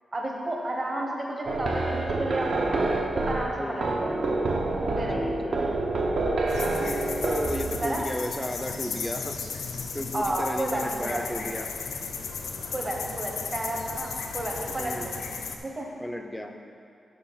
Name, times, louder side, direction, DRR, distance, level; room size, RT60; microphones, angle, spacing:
voice 1, 0.1-2.9 3.1-4.1 4.8-5.3 7.8-8.0 10.1-11.2 12.7-15.9, right 1 dB, 25° right, 0 dB, 0.9 m, -32 dB
sound 1, 1.5-8.0, right 2 dB, 55° right, 0.8 m, -27 dB
voice 2, 5.1-5.8 7.2-9.7 9.9-11.7 14.8-15.1 16.0-16.5, left 1 dB, 5° left, 4 dB, 0.4 m, -34 dB
sound 2, 6.5-15.6, left 5 dB, 90° left, 0.7 m, -35 dB
7.1 x 5.8 x 5.5 m, 2.5 s
wide cardioid pair, 175°, 0 cm